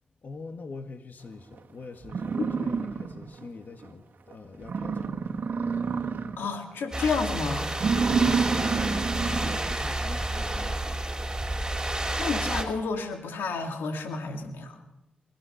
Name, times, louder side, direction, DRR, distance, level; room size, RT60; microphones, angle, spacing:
voice 1, 0.2-5.3 7.9-11.0, left 4 dB, 55° left, 6 dB, 1.7 m, -42 dB
sound 1, 1.6-1.7 2.0-3.4 3.8-3.9 4.3-4.4 4.6-6.5 6.9-7.2 7.7-9.7, right 5 dB, 60° right, 1.6 m, -28 dB
voice 2, 6.4-7.7 12.2-14.8, left 4 dB, 80° left, 5 dB, 2.3 m, -30 dB
sound 2, 6.9-12.6, right 1 dB, 20° right, 4.9 m, -30 dB
28.5 x 15.5 x 5.8 m, 0.93 s
supercardioid pair, 45°, 4 cm